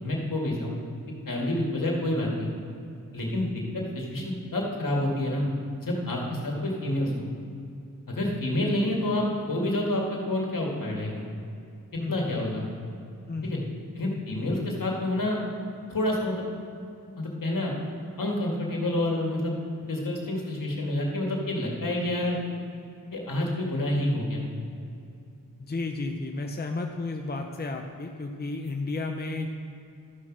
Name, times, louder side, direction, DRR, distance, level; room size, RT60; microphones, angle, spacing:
voice 1, 0.0-0.8 1.3-2.5 3.1-3.5 3.7-5.5 5.8-7.3 8.1-11.3 11.9-12.7 13.4-13.6 14.0-15.4 15.9-16.4 17.2-17.7 18.2-19.5 19.9-22.4 23.1-24.5, left 1 dB, 70° left, -1 dB, 2.2 m, -28 dB
voice 2, 12.0-12.3 13.3-13.8 25.6-29.5, left 3 dB, 30° left, 3 dB, 0.7 m, -33 dB
13.0 x 6.0 x 6.1 m, 2.6 s
wide cardioid pair, 65°, 35 cm